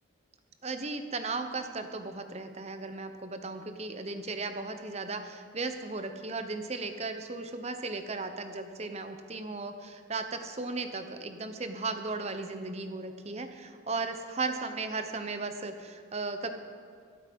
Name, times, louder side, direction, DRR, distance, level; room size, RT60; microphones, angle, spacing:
voice 1, 0.6-16.5, right 3 dB, 35° right, 7 dB, 1.0 m, -36 dB
23.5 x 8.1 x 5.4 m, 2.2 s
head